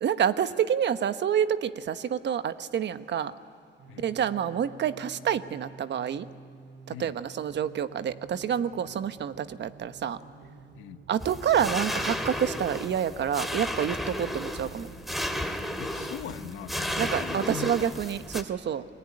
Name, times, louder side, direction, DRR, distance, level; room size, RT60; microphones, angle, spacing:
voice 1, 0.0-3.3 4.0-6.3 6.9-10.2 11.1-14.9 17.0-18.8, right 9 dB, 60° right, 12 dB, 1.1 m, -28 dB
sound 1, 3.8-13.0 13.6-17.3, right 3 dB, 85° right, 2.0 m, -50 dB
sound 2, 11.2-18.4, left 1 dB, ahead, 2.4 m, -33 dB
voice 2, 15.8-17.8, left 11 dB, 90° left, 11 dB, 1.1 m, -40 dB
28.5 x 20.5 x 9.8 m, 2.4 s
cardioid pair, 90°, 20 cm